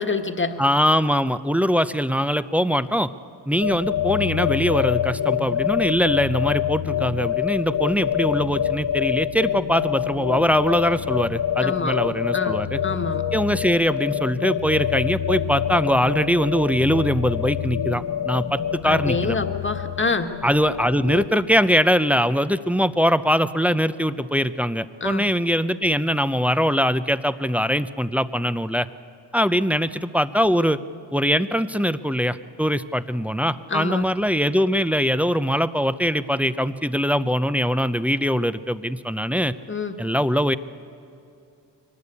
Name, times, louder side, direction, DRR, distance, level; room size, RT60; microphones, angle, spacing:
voice 1, 0.0-0.6 11.6-12.0 12.3-13.2 18.8-20.3 25.0-25.3 33.7-34.0 39.7-40.0, left 3 dB, 25° left, 6 dB, 1.6 m, -26 dB
voice 2, 0.6-3.1 3.5-12.8 13.3-19.4 20.4-28.9 29.3-30.8 31.1-39.5 40.0-40.6, equal, 5° right, 12 dB, 0.6 m, -22 dB
sound 1, 3.6-21.3, left 10 dB, 50° left, 0.9 m, -26 dB
23.0 x 19.5 x 8.5 m, 2.7 s
cardioid pair, 70°, 46 cm